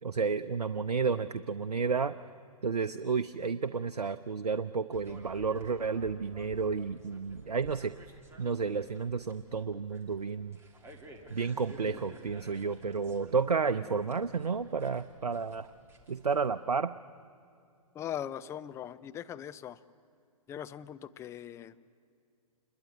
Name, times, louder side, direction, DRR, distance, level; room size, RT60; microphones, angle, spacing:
voice 1, 0.0-2.1 2.6-7.9 8.4-10.6 11.3-15.7 16.1-16.9, right 5 dB, 85° right, 12 dB, 0.7 m, -31 dB
sound 1, 4.9-16.5, right 2 dB, 15° right, 2.9 m, -54 dB
voice 2, 17.9-19.8 20.5-21.8, left 10 dB, 15° left, 12 dB, 0.6 m, -40 dB
27.0 x 21.5 x 9.5 m, 2.5 s
figure-of-eight pair, 125°, 19 cm